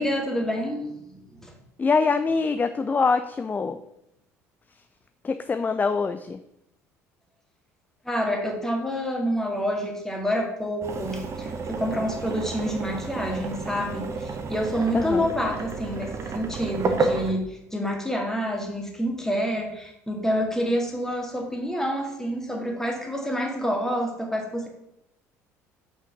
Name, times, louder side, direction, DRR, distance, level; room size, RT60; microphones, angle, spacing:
voice 1, 0.0-1.6 8.0-24.7, equal, 5° left, 1 dB, 2.1 m, -28 dB
voice 2, 1.8-3.8 5.2-6.4 14.9-15.3, left 4 dB, 20° left, 10 dB, 0.4 m, -24 dB
sound 1, 10.8-17.3, right 4 dB, 35° right, 1.1 m, -31 dB
5.8 x 5.8 x 5.9 m, 0.82 s
figure-of-eight pair, 60°, 8 cm